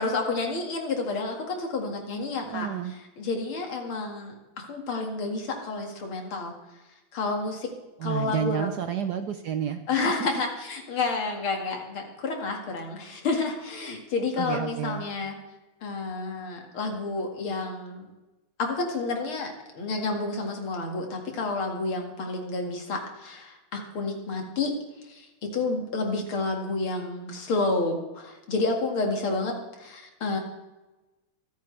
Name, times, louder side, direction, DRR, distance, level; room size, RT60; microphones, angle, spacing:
voice 1, 0.0-2.7 3.2-6.5 7.1-7.7 8.0-8.8 9.9-15.4 15.8-18.1 18.6-24.8 25.0-30.4, left 3 dB, 75° left, 2 dB, 2.9 m, -30 dB
voice 2, 2.5-2.9 8.0-9.8 14.4-15.0, right 8 dB, 65° right, 8 dB, 1.0 m, -30 dB
25.5 x 9.3 x 3.3 m, 1.1 s
omnidirectional pair, 2.4 m